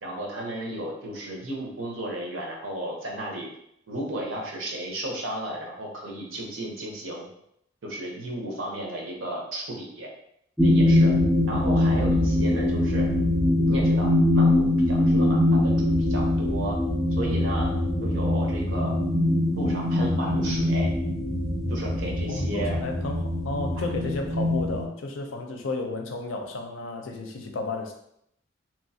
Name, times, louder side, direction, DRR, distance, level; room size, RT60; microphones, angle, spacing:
voice 1, 0.0-3.5 3.9-7.3 7.8-10.1 10.6-11.1 11.5-13.1 13.7-16.8 17.2-17.7 18.0-18.9 19.5-20.9 21.7-22.8 23.8-23.9 24.4-24.5 25.3-25.4, right 1 dB, 80° right, -1 dB, 0.8 m, -34 dB
sound 1, 10.6-24.9, left 1 dB, ahead, 0.3 m, -23 dB
voice 2, 22.3-27.9, left 2 dB, 80° left, 3 dB, 0.5 m, -32 dB
3.0 x 2.3 x 2.7 m, 0.74 s
head